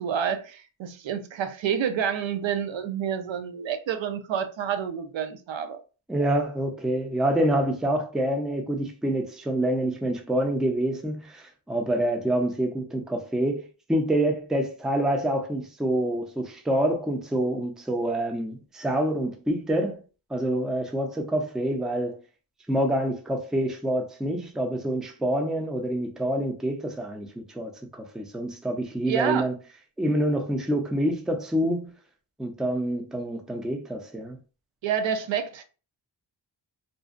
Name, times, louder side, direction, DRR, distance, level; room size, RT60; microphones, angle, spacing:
voice 1, 0.0-5.8 29.1-29.5 34.8-35.6, right 8 dB, 75° right, 0.5 m, -28 dB
voice 2, 6.1-13.6 13.9-20.0 20.3-22.2 22.7-27.3 27.5-29.5 30.0-31.9 32.4-34.4, right 1 dB, ahead, 0.4 m, -27 dB
2.5 x 2.0 x 2.4 m
wide cardioid pair, 95°, 46 cm